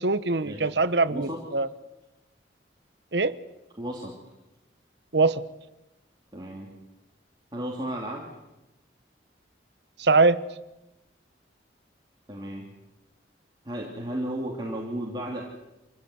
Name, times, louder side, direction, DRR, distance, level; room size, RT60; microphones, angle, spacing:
voice 1, 0.0-1.7 3.1-3.4 5.1-5.4 10.0-10.4, right 3 dB, 70° right, 14 dB, 1.0 m, -22 dB
voice 2, 1.1-1.4 3.8-4.2 6.3-6.7 7.5-8.3 12.3-12.7 13.6-15.4, right 1 dB, 25° right, -2 dB, 3.0 m, -34 dB
27.0 x 16.0 x 9.7 m, 0.98 s
head